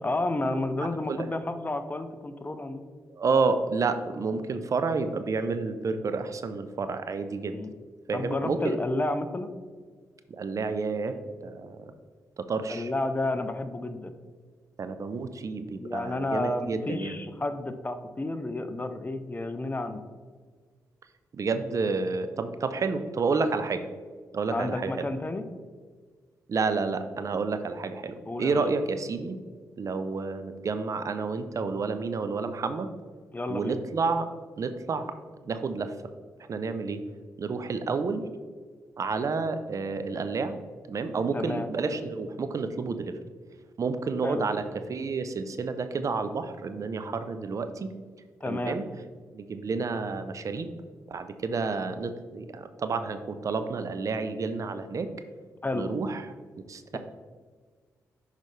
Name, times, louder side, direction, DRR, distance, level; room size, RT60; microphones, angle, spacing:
voice 1, 0.0-2.8 7.5-7.7 8.1-9.5 12.7-14.1 15.8-20.0 24.5-25.5 28.3-28.6 33.3-33.8 41.3-41.7 44.2-44.4 48.4-48.8 55.6-55.9 56.9-57.0, left 2 dB, 25° left, 9 dB, 0.6 m, -31 dB
voice 2, 0.8-1.2 3.1-7.6 8.1-8.8 10.3-11.2 11.4-11.8 12.4-12.9 14.8-17.2 21.3-23.8 24.3-25.1 26.5-29.4 29.8-32.9 33.5-34.3 34.6-35.1 35.4-35.9 36.5-37.0 37.4-38.3 39.0-40.6 40.9-43.2 43.8-44.6 44.9-47.9 48.4-48.8 49.3-50.7 51.1-55.1 55.7-56.3 56.7-57.0, right 4 dB, 50° right, 10 dB, 0.5 m, -30 dB
6.4 x 5.2 x 3.2 m, 1.5 s
cardioid pair, 60°, 7 cm